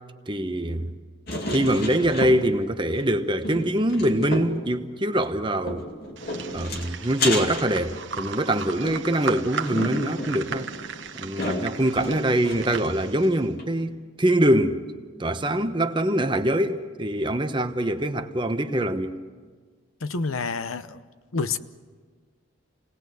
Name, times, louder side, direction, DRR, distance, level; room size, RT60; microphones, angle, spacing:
voice 1, 0.3-0.9 1.5-5.9 6.5-10.7 11.1-14.9 15.2-19.2, right 1 dB, 25° right, 1.0 m, -24 dB
sound 1, 1.3-2.7 3.0-3.1 3.4-4.7 5.7-8.4 8.8-12.9 13.2-13.3 13.6-13.7, left 1 dB, 50° left, 2.6 m, -32 dB
sound 2, 6.2-13.5, right 6 dB, 60° right, 1.1 m, -36 dB
voice 2, 20.0-21.0 21.3-21.6, left 4 dB, 90° left, 0.9 m, -28 dB
27.5 x 19.0 x 7.9 m
head